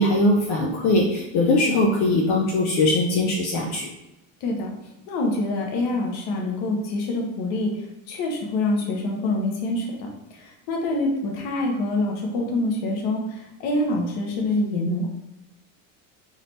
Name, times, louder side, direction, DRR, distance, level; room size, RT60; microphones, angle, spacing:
voice 1, 0.0-3.9, left 2 dB, 75° left, -1 dB, 0.9 m, -21 dB
voice 2, 4.4-4.7 5.1-7.7 8.1-15.1, left 2 dB, 55° left, 0 dB, 1.2 m, -26 dB
4.1 x 3.9 x 3.3 m, 0.92 s
cardioid pair, 175°, 43 cm